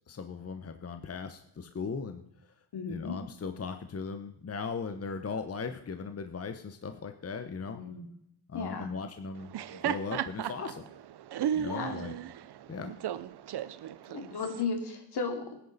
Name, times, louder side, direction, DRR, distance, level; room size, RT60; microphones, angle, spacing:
voice 1, 0.1-2.2 2.9-7.8 8.5-10.8 11.5-12.1 12.7-12.9, left 5 dB, 35° left, 8 dB, 1.0 m, -38 dB
voice 2, 2.7-3.2 7.7-8.0 8.5-8.9 11.6-12.0 14.1-15.5, left 5 dB, 75° left, 4 dB, 2.8 m, -35 dB
Laughter, 9.4-14.6, right 10 dB, 75° right, 0.7 m, -35 dB
18.5 x 10.5 x 4.1 m, 0.75 s
cardioid pair, 90°, 40 cm